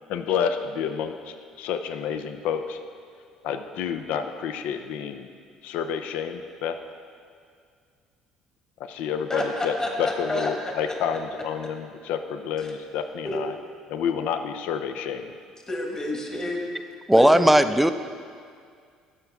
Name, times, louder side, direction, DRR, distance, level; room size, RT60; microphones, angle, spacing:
voice 1, 0.1-2.8 3.4-5.3 5.6-6.8 8.8-13.5 13.9-15.3, left 7 dB, 70° left, 8 dB, 0.5 m, -29 dB
voice 2, 9.3-11.0 13.2-13.4 15.7-16.7 17.1-17.5, left 1 dB, 25° left, 1 dB, 1.5 m, -29 dB
voice 3, 17.1-17.9, right 1 dB, 5° right, 10 dB, 0.4 m, -16 dB
13.0 x 5.9 x 3.5 m, 2.1 s
hypercardioid pair, 60°, 2 cm